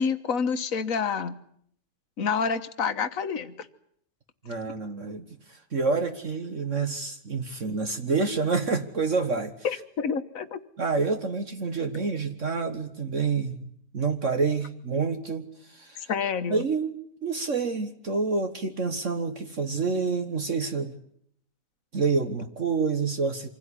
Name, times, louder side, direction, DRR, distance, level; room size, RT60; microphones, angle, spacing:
voice 1, 0.0-1.3 2.2-3.5 9.6-10.6 16.1-16.6, left 6 dB, 55° left, 10 dB, 1.6 m, -28 dB
voice 2, 4.4-9.5 10.8-16.1 16.5-16.9 17.2-21.0 21.9-23.5, right 4 dB, 50° right, 7 dB, 1.7 m, -28 dB
26.0 x 16.5 x 9.9 m, 0.68 s
omnidirectional pair, 1.7 m